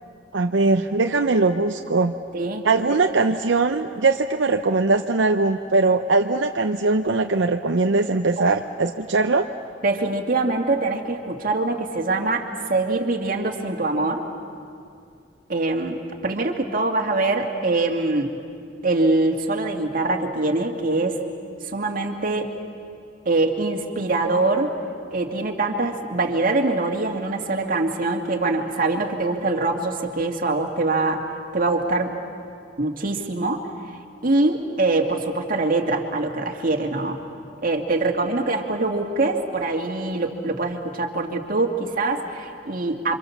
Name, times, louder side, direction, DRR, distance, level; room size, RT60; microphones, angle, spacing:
voice 1, 0.3-2.1 2.6-9.5, right 3 dB, 80° right, 5 dB, 0.7 m, -21 dB
voice 2, 9.8-14.2 15.5-18.3 18.8-21.2 21.6-22.5 23.3-24.7 25.1-31.2 31.5-32.1 32.8-33.6 34.2-37.2 37.6-43.2, right 2 dB, 50° right, 2 dB, 2.3 m, -23 dB
28.5 x 25.5 x 7.2 m, 2.4 s
head